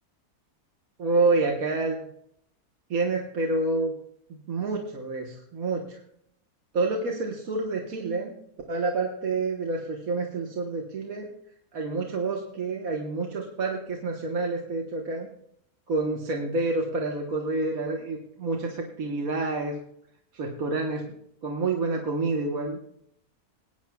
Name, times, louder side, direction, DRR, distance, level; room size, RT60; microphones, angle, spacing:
voice 1, 1.0-2.0 2.9-3.9 4.3-6.0 6.7-8.3 8.7-11.3 11.7-15.3 15.9-19.8 20.3-21.1 21.4-22.8, right 3 dB, 65° right, 1 dB, 1.7 m, -28 dB
19.5 x 9.9 x 2.3 m, 0.71 s
omnidirectional pair, 1.6 m